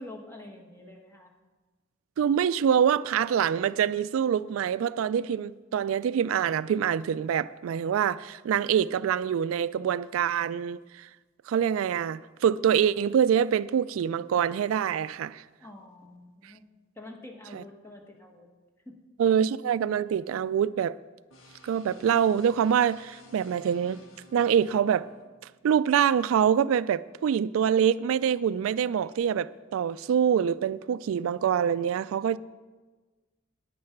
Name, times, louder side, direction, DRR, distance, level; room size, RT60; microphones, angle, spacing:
voice 1, 0.0-1.3 15.6-16.6 16.9-18.5 18.8-19.0, left 1 dB, 10° left, 1.3 m, -46 dB
voice 2, 2.2-11.1 11.5-15.4 16.4-16.5 17.5-17.6 19.2-21.0 21.6-24.0 24.3-25.1 25.6-32.4, right 8 dB, 85° right, 0.3 m, -25 dB
sound 1, 21.3-25.3, left 2 dB, 90° left, 1.6 m, -54 dB
9.6 x 9.4 x 5.9 m
head